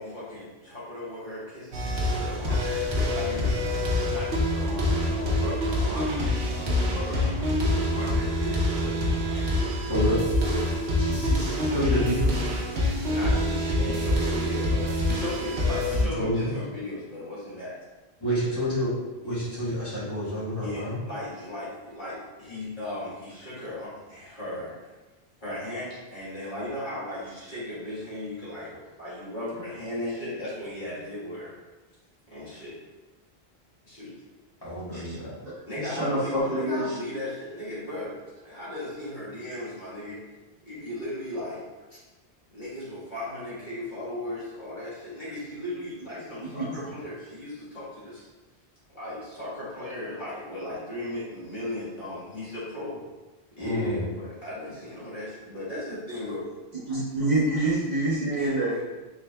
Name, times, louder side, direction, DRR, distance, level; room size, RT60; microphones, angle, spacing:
voice 1, 0.0-3.6 3.8-7.5 7.9-9.4 10.2-10.6 12.8-17.8 20.6-24.7 25.4-28.7 29.0-31.5 32.3-32.8 33.8-34.1 35.7-38.2 38.4-40.2 40.7-42.0 42.5-48.3 48.9-53.0 53.6-56.4 57.0-57.1 58.3-58.8, left 1 dB, 50° left, -10 dB, 1.6 m, -36 dB
sound 1, 1.7-16.1, left 1 dB, 70° right, 1.0 m, -26 dB
voice 2, 9.9-10.2 11.0-12.4 16.2-16.5 18.2-18.9 19.2-21.0 34.6-35.3 53.6-54.0, equal, 25° left, -11 dB, 1.5 m, -29 dB
voice 3, 35.8-37.0 46.5-46.7 56.9-58.8, right 1 dB, 40° right, -9 dB, 1.2 m, -26 dB
4.9 x 3.3 x 2.2 m, 1.2 s
omnidirectional pair, 1.1 m